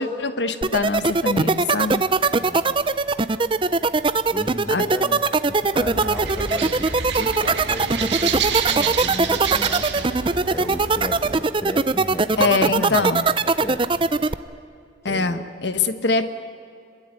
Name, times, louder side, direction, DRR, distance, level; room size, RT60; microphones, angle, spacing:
voice 1, 0.0-2.0 4.7-4.9 12.4-13.3 15.0-16.3, left 3 dB, 75° left, 10 dB, 1.2 m, -23 dB
sound 1, 0.6-14.3, right 3 dB, 30° right, 0.6 m, -20 dB
voice 2, 2.4-2.8 4.3-10.1 10.5-14.1 15.0-15.4, equal, 15° left, 8 dB, 1.2 m, -35 dB
sound 2, 5.7-11.4, right 6 dB, 80° right, 1.9 m, -28 dB
26.5 x 22.0 x 9.1 m, 2.4 s
head